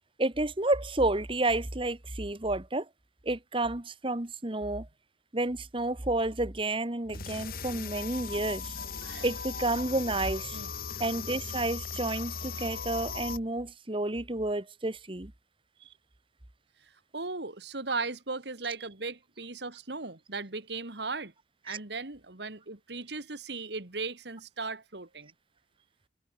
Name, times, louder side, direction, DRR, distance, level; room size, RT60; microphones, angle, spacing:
voice 1, 0.2-2.9 3.2-4.9 5.3-8.7 9.2-10.6 11.0-15.3 21.7-21.8, right 2 dB, 30° right, 1.3 m, -30 dB
sound 1, 7.1-13.4, left 5 dB, 50° left, 1.8 m, -38 dB
voice 2, 8.8-9.2 10.5-10.7 15.8-15.9 17.1-21.3 21.6-25.3, right 3 dB, 60° right, 2.1 m, -37 dB
head